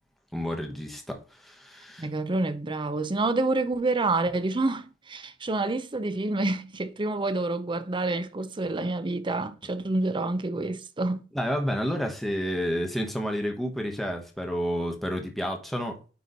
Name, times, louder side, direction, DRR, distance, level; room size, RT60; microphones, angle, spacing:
voice 1, 0.3-2.1 11.3-16.0, equal, ahead, 1.1 m, -30 dB
voice 2, 2.0-11.3, right 2 dB, 25° right, 0.6 m, -28 dB
9.4 x 3.2 x 4.0 m
head